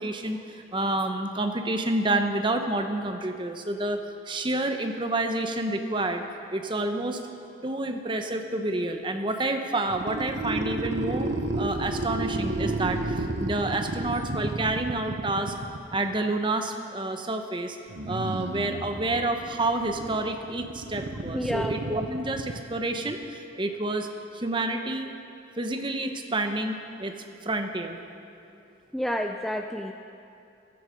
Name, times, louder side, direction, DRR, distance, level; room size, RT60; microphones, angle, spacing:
voice 1, 0.0-6.2 6.5-7.2 7.6-15.5 15.9-17.8 18.1-24.1 24.3-25.1 25.6-27.1 27.4-28.0, right 2 dB, 25° right, 6 dB, 0.8 m, -29 dB
sound 1, 9.9-16.1 17.9-23.1, right 2 dB, 80° right, 0.8 m, -32 dB
voice 2, 21.3-21.8 28.9-29.9, equal, ahead, 4 dB, 0.4 m, -29 dB
15.5 x 13.0 x 5.1 m, 2.7 s
head